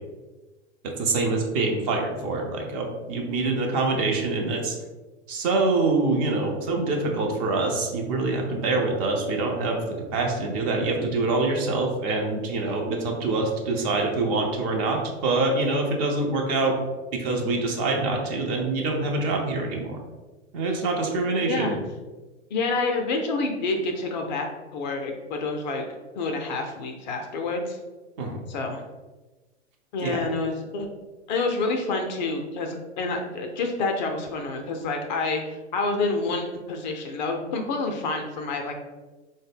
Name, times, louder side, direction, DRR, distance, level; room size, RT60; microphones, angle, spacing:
voice 1, 0.8-4.8 5.3-9.8 10.1-16.7 17.1-20.0 20.5-21.8 28.2-28.4 30.0-30.2, right 3 dB, 30° right, 2 dB, 0.6 m, -25 dB
voice 2, 21.4-21.8 22.5-24.5 24.7-25.8 26.2-27.8 28.5-28.8 29.9-30.9 31.3-38.7, left 3 dB, 40° left, 3 dB, 0.5 m, -28 dB
3.7 x 2.1 x 3.4 m, 1.2 s
figure-of-eight pair, 100°, 36 cm